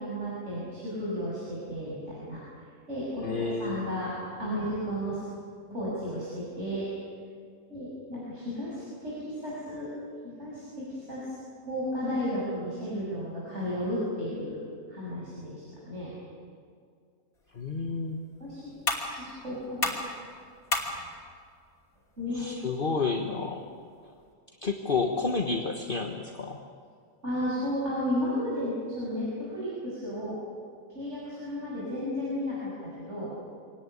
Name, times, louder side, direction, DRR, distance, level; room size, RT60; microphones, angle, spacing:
voice 1, 0.0-2.4 2.9-4.1 4.4-5.2 5.7-6.9 7.7-9.9 10.2-11.4 11.6-14.6 14.9-16.1 18.4-18.7 19.0-19.9 22.2-22.5 27.2-30.4 30.9-32.7 33.0-33.3, equal, 50° right, -7 dB, 6.9 m, -33 dB
voice 2, 3.2-3.8 17.5-18.2 22.3-23.6 24.0-24.1 24.6-26.6, left 4 dB, 40° left, 3 dB, 1.5 m, -30 dB
sound 1, 17.3-24.3, left 2 dB, 70° left, 3.5 m, -37 dB
25.0 x 18.5 x 10.0 m, 2.2 s
omnidirectional pair, 1.5 m